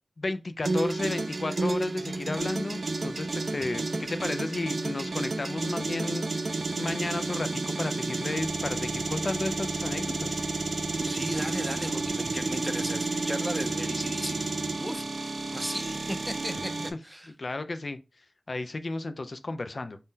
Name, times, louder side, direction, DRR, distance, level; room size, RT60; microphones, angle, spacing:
voice 1, 0.2-10.4 16.5-16.6 17.4-18.0 18.5-20.0, left 2 dB, 65° left, 0.3 m, -33 dB
sound 1, 0.6-16.9, right 3 dB, 70° right, 0.4 m, -31 dB
voice 2, 11.0-16.7 17.0-17.3, equal, 10° right, 0.5 m, -36 dB
2.7 x 2.1 x 3.6 m
cardioid pair, 40°, 0 cm